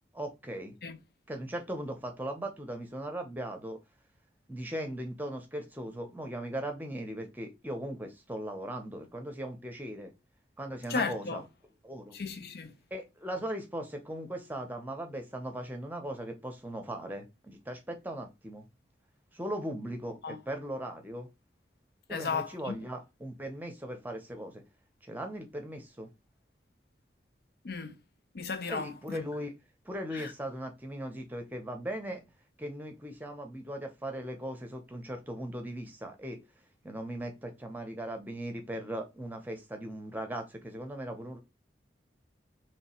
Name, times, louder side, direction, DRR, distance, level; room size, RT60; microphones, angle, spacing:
voice 1, 0.1-0.7 1.3-3.8 4.5-10.1 10.6-11.4 11.8-12.2 12.9-18.6 19.3-21.3 22.1-24.6 25.0-26.1 28.7-29.5 29.8-32.2 32.6-36.4 36.8-41.4, right 1 dB, 10° right, 0.8 m, -38 dB
voice 2, 10.9-11.4 12.1-12.7 20.2-20.4 22.1-22.8 27.6-28.0 28.3-29.2 30.1-30.3, left 4 dB, 60° left, 0.5 m, -35 dB
3.2 x 2.9 x 4.3 m
head